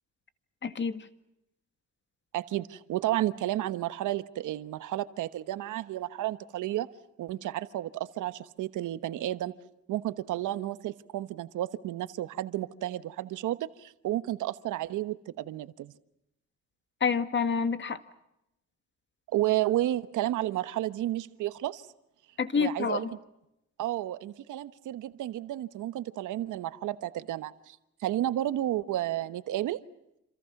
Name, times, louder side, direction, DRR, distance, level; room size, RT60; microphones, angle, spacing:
voice 1, 0.6-1.1 17.0-18.0 22.4-23.0, left 5 dB, 40° left, 10 dB, 1.9 m, -28 dB
voice 2, 2.3-6.9 7.2-9.5 9.9-15.9 19.3-21.8 22.5-23.2 23.8-27.8 28.0-29.8, right 14 dB, 80° right, 13 dB, 1.2 m, -32 dB
28.0 x 27.5 x 6.0 m, 0.85 s
cardioid pair, 90°, 30 cm